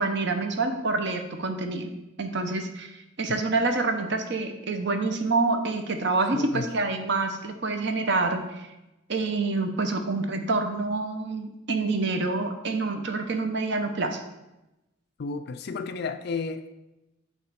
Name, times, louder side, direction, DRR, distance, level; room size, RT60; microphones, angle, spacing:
voice 1, 0.0-1.9 2.2-2.9 3.2-8.7 9.1-14.2, right 3 dB, 55° right, 6 dB, 0.7 m, -27 dB
voice 2, 6.3-6.7 15.2-16.7, left 4 dB, 50° left, 10 dB, 0.4 m, -32 dB
8.9 x 3.1 x 4.7 m, 0.97 s
head